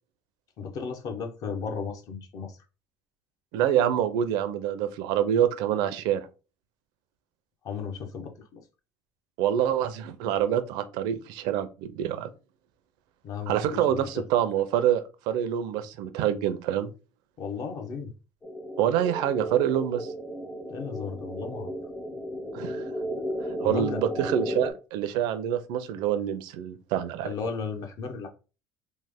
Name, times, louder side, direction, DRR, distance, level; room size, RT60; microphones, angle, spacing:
voice 1, 0.6-2.6 7.6-8.6 13.2-14.2 17.4-18.1 20.7-21.7 23.6-24.0 27.2-28.3, left 5 dB, 55° left, 0.7 m, -35 dB
voice 2, 3.5-6.3 9.4-12.3 13.5-16.9 18.8-20.1 22.5-22.9 23.6-27.3, right 10 dB, 80° right, 0.5 m, -26 dB
sound 1, 18.4-24.7, equal, 15° left, 0.6 m, -34 dB
3.2 x 2.1 x 3.4 m
cardioid pair, 125°, 7 cm